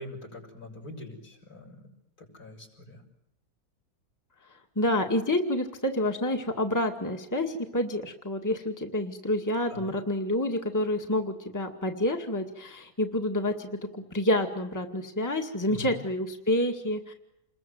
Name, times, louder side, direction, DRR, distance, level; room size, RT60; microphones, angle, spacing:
voice 1, 0.0-1.8 2.3-3.0 9.7-9.9 15.7-15.8, left 1 dB, 65° left, 2 dB, 6.7 m, -43 dB
voice 2, 4.8-17.1, left 1 dB, 10° left, 3 dB, 2.1 m, -28 dB
28.5 x 21.5 x 7.9 m, 0.82 s
omnidirectional pair, 1.7 m